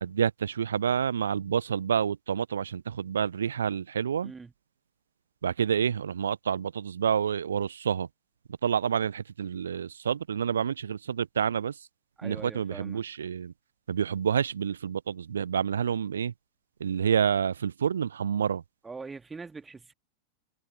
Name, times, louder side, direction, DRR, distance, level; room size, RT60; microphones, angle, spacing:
voice 1, 0.0-4.3 5.4-8.1 8.6-11.7 12.2-13.5 13.9-16.3 16.8-18.6, right 7 dB, 70° right, 0.8 m, -28 dB
voice 2, 4.2-4.5 12.2-13.0 18.8-19.9, right 4 dB, 15° right, 2.0 m, -42 dB
figure-of-eight pair, 90°, 0 cm